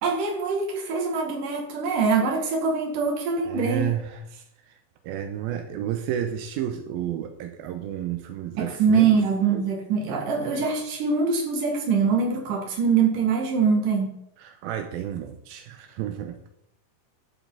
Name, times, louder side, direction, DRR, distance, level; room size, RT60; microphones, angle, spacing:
voice 1, 0.0-3.9 8.6-14.1, right 5 dB, 65° right, 2 dB, 3.6 m, -23 dB
voice 2, 3.4-4.7 5.0-9.2 14.4-16.5, right 10 dB, 85° right, 5 dB, 2.7 m, -31 dB
11.5 x 11.5 x 3.9 m, 0.77 s
omnidirectional pair, 4.2 m